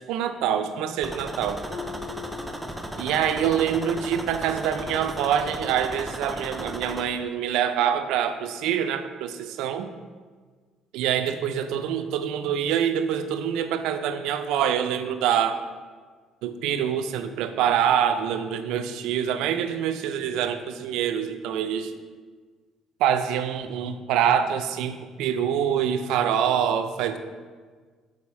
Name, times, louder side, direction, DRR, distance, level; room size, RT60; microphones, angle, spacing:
voice 1, 0.1-1.6 3.0-9.9 10.9-15.6 16.4-21.9 23.0-27.2, right 9 dB, 90° right, 9 dB, 0.4 m, -25 dB
sound 1, 1.0-7.0, right 1 dB, 5° right, 0.4 m, -35 dB
Harp, 1.7-3.5 3.8-4.2 4.8-4.9, left 8 dB, 40° left, 0.7 m, -42 dB
6.1 x 4.0 x 4.2 m, 1.5 s
cardioid pair, 150°, 0 cm